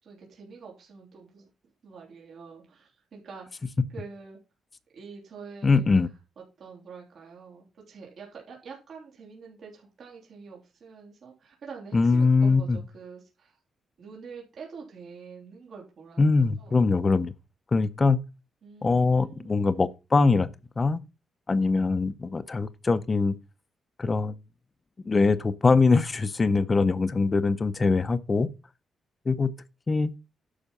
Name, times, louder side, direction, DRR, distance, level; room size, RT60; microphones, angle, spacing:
voice 1, 0.0-1.5 1.8-4.4 4.9-5.9 6.6-13.6 14.0-16.8 18.6-19.9, right 5 dB, 50° right, 3.3 m, -46 dB
voice 2, 5.6-6.1 11.9-12.8 16.2-17.3 17.7-18.2 18.8-20.5 20.8-21.0 21.5-23.3 24.0-24.4 25.1-28.5 29.3-29.5 29.9-30.1, left 4 dB, 20° left, 0.6 m, -22 dB
10.0 x 6.1 x 5.4 m
wide cardioid pair, 175°, 0 cm